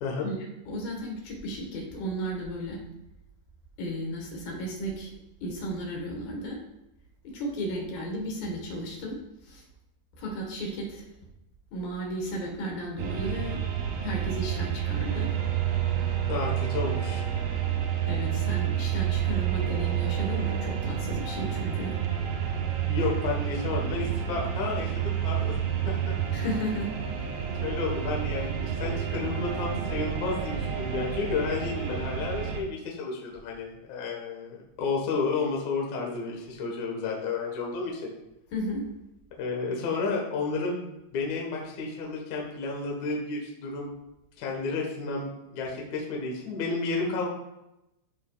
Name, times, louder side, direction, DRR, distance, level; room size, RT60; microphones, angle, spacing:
voice 1, 0.7-2.8 3.8-5.1 5.4-6.6 7.2-9.2 9.4-9.6 10.2-11.0 11.7-13.6 14.0-15.3 18.1-21.9 26.3-26.9 38.5-38.8, equal, 65° left, -1 dB, 2.7 m, -34 dB
sound 1, 13.0-32.6, right 9 dB, 75° right, 2.6 m, -29 dB
sound 2, 15.0-22.7, right 6 dB, 90° right, 2.3 m, -45 dB
voice 2, 16.3-17.2 22.9-25.6 25.9-26.2 27.6-38.2 39.4-40.8 41.1-43.9 44.4-47.3, left 4 dB, 80° left, -1 dB, 1.6 m, -31 dB
13.5 x 4.7 x 2.3 m, 0.90 s
omnidirectional pair, 5.4 m